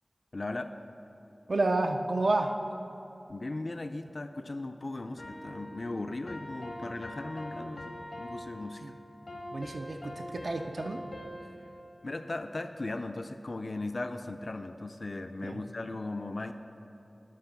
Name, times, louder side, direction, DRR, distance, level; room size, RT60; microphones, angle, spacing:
voice 1, 0.3-0.7 3.3-8.9 12.0-16.5, left 2 dB, 60° left, 7 dB, 0.3 m, -37 dB
voice 2, 1.5-2.5 8.8-8.9 9.5-11.0 15.4-15.6, right 2 dB, 80° right, 3 dB, 0.4 m, -30 dB
sound 1, 5.2-12.5, left 1 dB, 85° left, 1.1 m, -44 dB
11.5 x 4.2 x 5.9 m, 2.9 s
wide cardioid pair, 50°, 0 cm